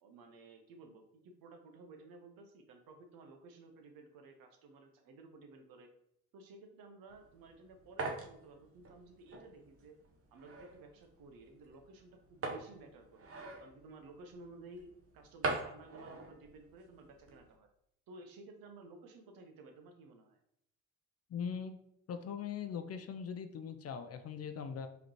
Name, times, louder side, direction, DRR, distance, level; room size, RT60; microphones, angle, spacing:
voice 1, 0.0-5.9 6.3-10.0 10.3-13.3 13.6-14.9 15.1-17.7 18.1-20.4, right 3 dB, 60° right, 5 dB, 0.9 m, -55 dB
sound 1, 7.1-17.5, right 3 dB, 35° right, 0.9 m, -44 dB
voice 2, 21.3-21.8 22.1-24.9, left 7 dB, 40° left, 8 dB, 0.5 m, -41 dB
4.9 x 3.2 x 3.0 m, 0.74 s
hypercardioid pair, 55°, 39 cm